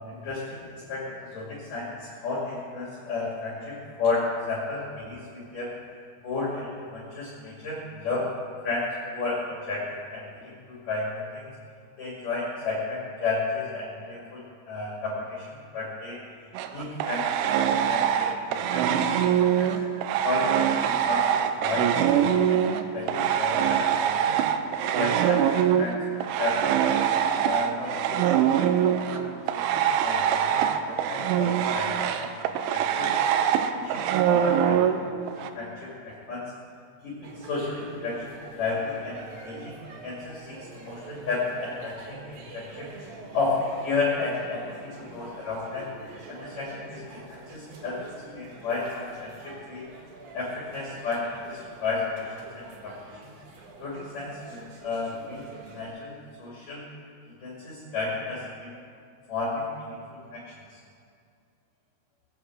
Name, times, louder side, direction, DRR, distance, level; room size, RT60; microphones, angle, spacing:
voice 1, 0.1-5.7 6.2-8.2 8.6-11.5 12.0-16.2 16.7-18.9 19.2-19.7 20.2-22.7 22.9-24.4 24.9-26.8 27.4-32.3 32.7-33.1 33.6-35.1 35.4-36.4 37.0-42.9 43.3-45.9 46.3-48.0 48.3-49.9 50.3-53.3 53.8-55.4 55.7-56.8 57.3-58.8 59.3-60.0 60.3-60.8, left 3 dB, 50° left, -6 dB, 3.5 m, -33 dB
sound 1, 16.6-22.8 23.1-35.5, right 9 dB, 85° right, 3.0 m, -24 dB
sound 2, 37.2-55.8, right 3 dB, 60° right, 2.7 m, -46 dB
19.5 x 8.3 x 7.8 m, 2.4 s
omnidirectional pair, 5.6 m